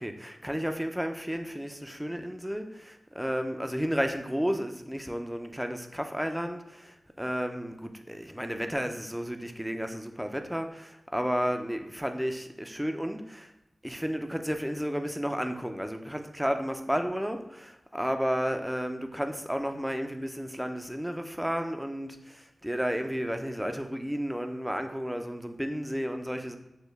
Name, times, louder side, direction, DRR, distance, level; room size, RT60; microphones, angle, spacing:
voice 1, 0.0-13.5 13.8-26.6, equal, 5° right, 6 dB, 0.5 m, -32 dB
6.4 x 2.2 x 3.4 m, 0.90 s
cardioid pair, 55°, 0 cm